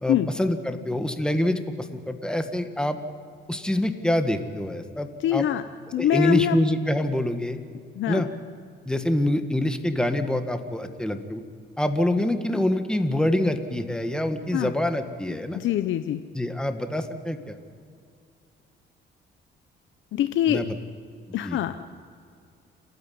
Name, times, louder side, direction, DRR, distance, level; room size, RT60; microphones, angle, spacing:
voice 1, 0.0-3.0 3.5-5.5 6.0-7.6 8.1-8.3 8.9-11.4 11.8-15.6 16.3-17.6 20.5-20.6 21.4-21.6, left 1 dB, 5° left, 7 dB, 1.8 m, -25 dB
voice 2, 5.2-5.6 5.9-6.6 8.0-8.2 14.5-14.7 15.5-16.2 20.1-20.6 21.3-21.8, left 12 dB, 75° left, 10 dB, 0.8 m, -24 dB
29.5 x 9.9 x 9.5 m, 2.3 s
cardioid pair, 90°, 20 cm